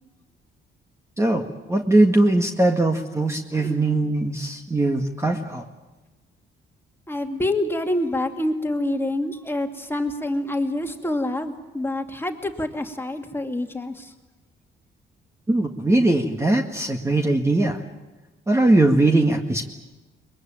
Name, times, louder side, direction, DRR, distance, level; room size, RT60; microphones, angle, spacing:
voice 1, 1.2-5.6 15.5-17.8 18.5-19.7, right 2 dB, 15° right, 4 dB, 1.8 m, -20 dB
voice 2, 7.1-14.1, left 1 dB, 10° left, 4 dB, 2.4 m, -27 dB
22.5 x 22.0 x 8.9 m, 1.1 s
cardioid pair, 90°, 20 cm